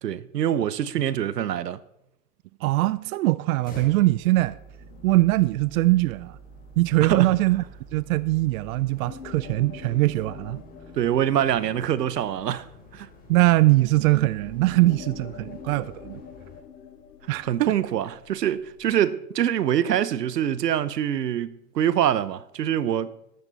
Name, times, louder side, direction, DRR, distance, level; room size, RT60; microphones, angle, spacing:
voice 1, 0.0-1.8 7.0-7.4 11.0-12.7 12.9-13.1 17.4-23.1, right 10 dB, 85° right, 0.9 m, -24 dB
voice 2, 2.6-4.6 5.0-6.4 6.8-7.6 7.9-10.6 13.3-16.2 17.3-17.7, right 18 dB, 60° right, 0.6 m, -22 dB
sound 1, 3.6-16.6, left 2 dB, 20° left, 3.7 m, -49 dB
sound 2, 4.3-9.6, right 6 dB, 35° right, 1.7 m, -48 dB
sound 3, 4.8-18.9, left 8 dB, 85° left, 1.5 m, -48 dB
13.5 x 12.0 x 4.1 m
hypercardioid pair, 105°, 48 cm